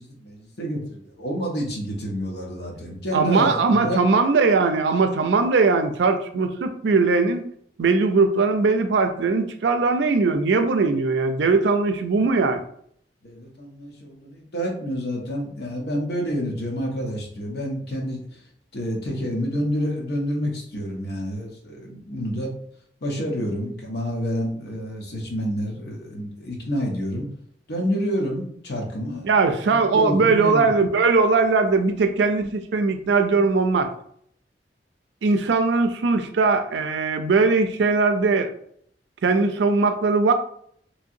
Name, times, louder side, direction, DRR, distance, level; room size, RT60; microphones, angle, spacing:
voice 1, 0.0-4.0 13.2-18.2 18.7-22.5 23.0-27.3 27.7-29.3 29.9-30.7, equal, 65° left, 0 dB, 0.9 m, -28 dB
voice 2, 3.1-7.5 7.8-12.6 29.2-33.9 35.2-38.5 39.2-40.3, right 4 dB, 80° right, 8 dB, 0.4 m, -20 dB
3.0 x 2.7 x 2.6 m, 0.64 s
head